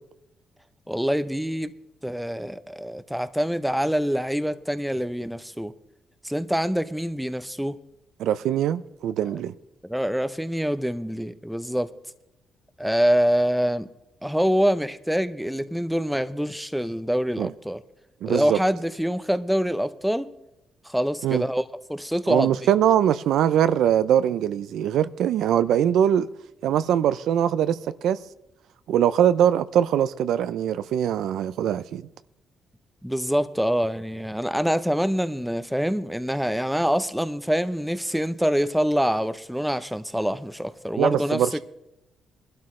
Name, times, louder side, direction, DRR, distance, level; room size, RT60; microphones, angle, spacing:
voice 1, 0.9-1.7 2.0-5.7 6.2-7.8 9.9-11.9 12.8-13.9 14.2-17.8 18.3-20.3 20.9-21.6 21.9-22.5 33.0-41.4, equal, ahead, 0.7 m, -25 dB
voice 2, 8.2-9.5 17.4-17.5 18.2-18.6 21.2-21.4 22.3-26.3 26.6-28.2 28.9-32.0 41.0-41.6, right 10 dB, 80° right, 0.5 m, -22 dB
20.0 x 12.5 x 3.2 m
cardioid pair, 95°, 0 cm